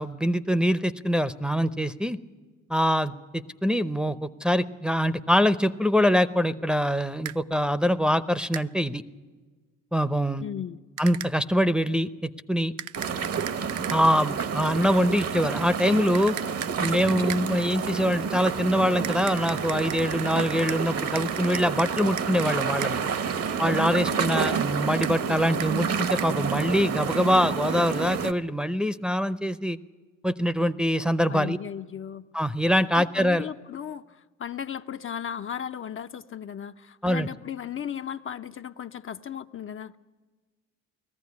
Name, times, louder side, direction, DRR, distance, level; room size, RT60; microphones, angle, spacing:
voice 1, 0.0-2.2 2.7-9.0 9.9-10.5 11.0-12.7 13.9-16.4 16.8-23.0 23.6-29.8 30.2-31.6 32.3-33.5 37.0-37.3, equal, 5° right, 9 dB, 0.7 m, -24 dB
sound 1, 7.2-7.4 8.5-8.7 11.0-11.3 12.8-14.0 16.1-17.5 19.0-20.8 21.1-22.9 25.0-25.1 25.6-25.7 26.2-26.3, right 12 dB, 65° right, 0.6 m, -37 dB
voice 2, 10.4-10.8 24.1-24.7 31.3-32.3 32.9-40.0, left 9 dB, 40° left, 8 dB, 0.6 m, -36 dB
sound 2, 12.9-28.3, right 6 dB, 50° right, 1.0 m, -29 dB
19.5 x 14.5 x 9.6 m, 1.4 s
supercardioid pair, 80°, 32 cm